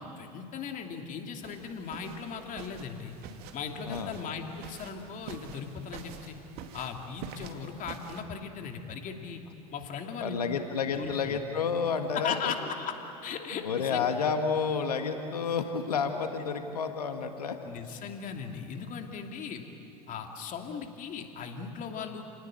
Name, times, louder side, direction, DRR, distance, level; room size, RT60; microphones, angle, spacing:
voice 1, 0.0-3.1 3.5-6.4 6.7-9.4 9.7-10.5 10.8-11.4 12.1-13.0 13.2-14.1 17.6-19.7 20.1-22.2, left 6 dB, 45° left, 4 dB, 2.8 m, -38 dB
sound 1, 1.4-8.2, right 7 dB, 55° right, 2.2 m, -46 dB
voice 2, 3.9-4.2 10.2-12.5 13.6-17.6, left 6 dB, 85° left, 6 dB, 1.7 m, -30 dB
30.0 x 19.0 x 8.8 m, 2.8 s
hypercardioid pair, 80°, 19 cm